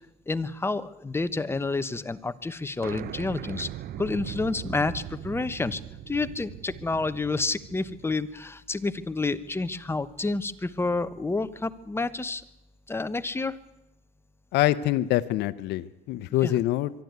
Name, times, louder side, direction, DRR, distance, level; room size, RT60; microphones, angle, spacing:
voice 1, 0.3-3.7 4.0-5.8 6.1-12.4 12.9-13.6 16.4-16.6, left 3 dB, 15° left, 12 dB, 1.0 m, -29 dB
sound 1, 2.8-8.1, right 12 dB, 65° right, 0.8 m, -40 dB
voice 2, 14.5-16.9, left 15 dB, 85° left, 12 dB, 0.7 m, -25 dB
23.5 x 12.0 x 9.4 m, 0.91 s
cardioid pair, 110°, 17 cm